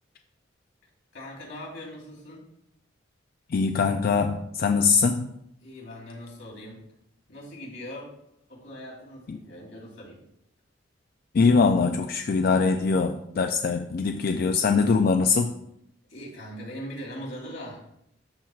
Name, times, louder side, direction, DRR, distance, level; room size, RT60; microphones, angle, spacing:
voice 1, 1.1-2.5 5.6-6.8 7.3-8.1 8.5-10.2 16.1-17.9, equal, 80° left, -4 dB, 3.0 m, -40 dB
voice 2, 3.5-5.3 9.3-9.4 11.3-15.5, left 4 dB, 50° left, 6 dB, 0.3 m, -22 dB
13.0 x 4.5 x 2.4 m, 0.77 s
head